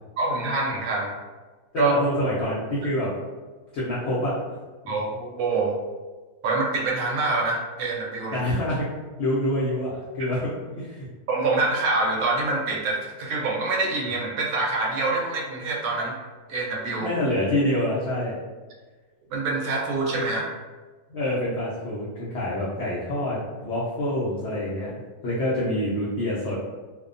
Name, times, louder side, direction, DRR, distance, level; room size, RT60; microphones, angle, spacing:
voice 1, 0.2-1.1 1.8-1.9 4.9-5.8 6.4-8.4 11.3-16.2 16.5-17.1 19.3-20.5, right 3 dB, 75° right, -2 dB, 1.1 m, -25 dB
voice 2, 1.7-3.1 3.7-4.4 4.8-4.9 8.3-8.9 9.2-10.5 10.8-11.1 17.0-18.4 21.1-24.9 25.2-26.6, left 1 dB, 65° left, -7 dB, 0.7 m, -26 dB
2.6 x 2.1 x 2.5 m, 1.3 s
omnidirectional pair, 1.6 m